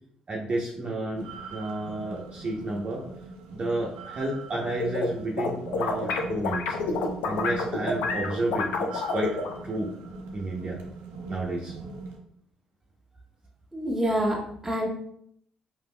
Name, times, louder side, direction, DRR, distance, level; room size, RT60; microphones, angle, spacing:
voice 1, 0.3-1.3 1.5-3.0 3.5-6.8 7.2-9.3 9.6-9.9 10.3-10.8 11.3-11.8, right 2 dB, 40° right, -3 dB, 0.9 m, -31 dB
sound 1, 1.1-12.2, right 3 dB, 80° right, 0.6 m, -41 dB
sound 2, 4.5-5.1 5.4-9.6, left 4 dB, 75° left, 0.6 m, -28 dB
voice 2, 13.7-14.9, equal, 10° right, -2 dB, 1.6 m, -27 dB
5.2 x 3.4 x 2.2 m, 0.68 s
hypercardioid pair, 55°, 3 cm